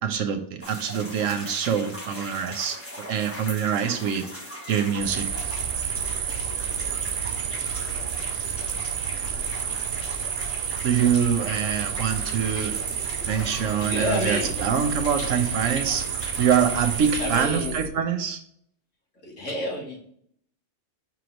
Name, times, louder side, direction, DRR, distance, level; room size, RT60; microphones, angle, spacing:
voice 1, 0.0-2.8 3.1-4.3 4.7-5.3 10.8-12.8 13.3-16.1 16.4-18.4, right 7 dB, 85° right, 7 dB, 1.1 m, -25 dB
sound 1, 0.6-17.5, equal, 10° left, 1.1 m, -39 dB
sound 2, 5.0-17.9, right 8 dB, 65° right, 0.7 m, -30 dB
voice 2, 13.8-14.5 17.2-17.8 19.2-20.0, left 1 dB, 75° left, -2 dB, 2.0 m, -29 dB
6.0 x 3.1 x 5.1 m, 0.68 s
omnidirectional pair, 1.3 m